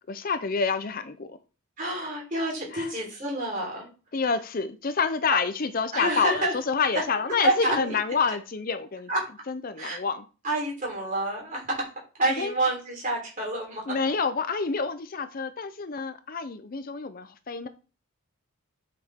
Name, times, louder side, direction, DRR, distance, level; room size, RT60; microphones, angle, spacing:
voice 1, 0.1-1.4 2.7-2.9 4.1-9.1 9.5-10.2 12.4-12.5 13.9-17.7, left 5 dB, 40° left, 11 dB, 0.5 m, -28 dB
voice 2, 1.8-3.9 5.9-6.5 6.9-7.0 7.4-7.9 9.1-9.3 9.8-10.0 10.4-11.9 12.2-13.8, right 1 dB, 35° right, -2 dB, 3.6 m, -28 dB
8.1 x 5.9 x 3.6 m, 0.35 s
head